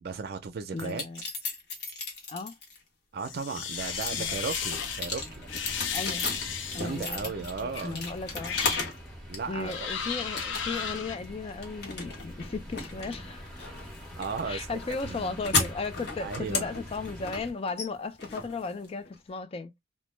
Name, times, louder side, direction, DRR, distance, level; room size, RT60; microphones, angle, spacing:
voice 1, 0.0-1.0 3.1-5.5 6.7-8.0 9.3-9.7 14.2-14.7 15.1-15.4 16.2-16.8, right 4 dB, 55° right, 0.4 m, -35 dB
voice 2, 0.7-1.2 2.3-2.5 4.2-4.4 5.9-6.3 6.7-8.6 9.5-13.5 14.5-19.7, left 4 dB, 30° left, 0.3 m, -36 dB
sound 1, 0.8-2.8 3.3-9.0 9.3-10.0 10.4-11.0 11.2-19.2, left 4 dB, 60° left, 0.9 m, -35 dB
sound 2, 3.2-5.0 5.5-7.0 7.7-7.9 8.4-8.9 9.6-11.1, left 7 dB, 85° left, 0.5 m, -34 dB
sound 3, 3.7-17.5, equal, 5° left, 0.8 m, -45 dB
2.1 x 2.0 x 3.0 m
head